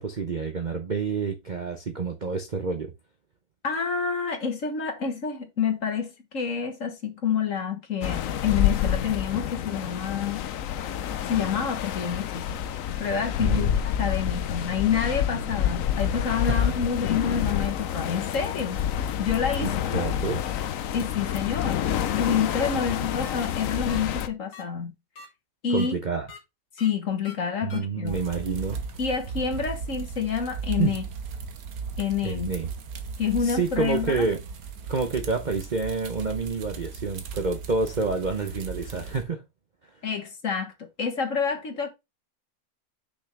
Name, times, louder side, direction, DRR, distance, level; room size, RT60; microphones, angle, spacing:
voice 1, 0.0-2.9 13.4-13.8 16.5-16.7 19.6-20.4 25.7-26.3 27.6-28.8 30.8-30.9 32.2-32.7 33.4-34.4 34.9-39.4, right 4 dB, 40° right, 0.6 m, -28 dB
voice 2, 3.6-10.4 11.2-12.6 13.0-13.7 14.0-18.8 19.2-19.9 20.9-24.9 25.6-26.0 26.8-28.2 29.0-31.0 32.0-32.5 33.2-34.3 40.0-40.7 41.0-41.9, left 6 dB, 50° left, 1.7 m, -28 dB
sound 1, 8.0-24.3, left 10 dB, 65° left, 0.9 m, -28 dB
sound 2, 21.8-21.9 22.5-22.6 23.2-23.3 23.9-24.0 24.5-24.6 25.2-25.3 25.8-25.9 26.3-26.4 26.8-26.9 27.3-27.4 27.7-27.8, left 3 dB, 80° left, 2.6 m, -43 dB
sound 3, 28.1-39.2, right 5 dB, 60° right, 1.4 m, -37 dB
6.3 x 6.0 x 3.3 m
omnidirectional pair, 1.9 m